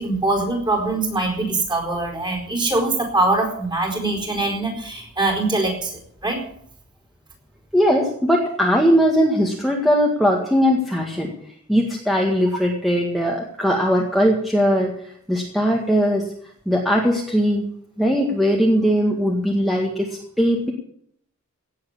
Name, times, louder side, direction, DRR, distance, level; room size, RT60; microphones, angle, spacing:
voice 1, 0.0-6.4, right 2 dB, 20° right, 2 dB, 4.6 m, -23 dB
voice 2, 7.7-11.3 11.7-14.9 15.3-16.3 16.7-17.6 18.0-20.7, equal, ahead, -1 dB, 1.8 m, -19 dB
17.5 x 8.0 x 8.6 m, 0.67 s
head